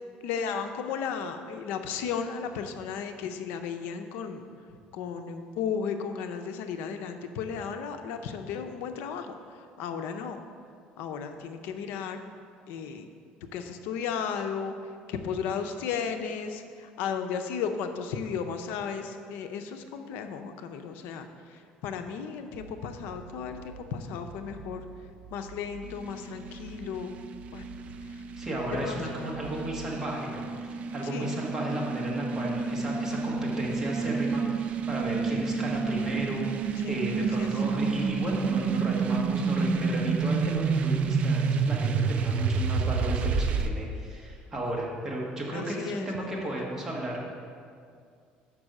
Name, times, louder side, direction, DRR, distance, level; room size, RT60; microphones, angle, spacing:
voice 1, 0.2-4.4 4.9-10.4 11.0-12.2 12.7-13.1 13.5-24.8 25.3-27.2 27.5-27.6 28.0-28.2 28.8-29.2 31.0-31.4 36.7-37.6 45.5-46.5, left 6 dB, 75° left, 7 dB, 0.6 m, -35 dB
sound 1, 22.6-30.0, right 5 dB, 85° right, 1.0 m, -49 dB
sound 2, 25.8-43.7, right 5 dB, 40° right, 0.4 m, -29 dB
voice 2, 28.4-47.2, right 1 dB, 15° right, -4 dB, 1.4 m, -34 dB
6.0 x 5.4 x 6.5 m, 2.2 s
cardioid pair, 150°, 3 cm